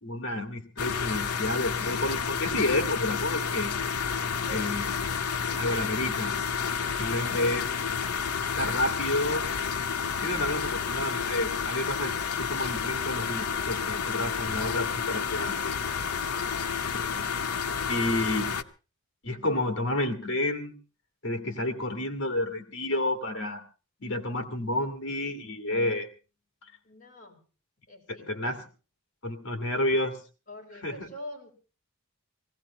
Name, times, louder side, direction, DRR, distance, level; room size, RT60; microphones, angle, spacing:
voice 1, 0.0-3.7 4.5-5.2 5.6-6.3 7.0-7.7 8.6-9.4 10.2-12.1 12.4-15.7 16.9-17.2 17.9-18.5 19.2-20.8 21.2-23.6 24.0-26.1 28.1-28.6 29.2-30.2 30.8-31.1, left 1 dB, 60° left, 8 dB, 2.3 m, -30 dB
sound 1, 0.8-18.6, left 6 dB, 90° left, 0.8 m, -30 dB
voice 2, 6.8-7.5 16.3-16.8 26.8-27.4 27.9-28.5 30.5-31.5, left 1 dB, 35° left, 0 dB, 4.0 m, -46 dB
18.5 x 16.0 x 4.3 m, 0.34 s
head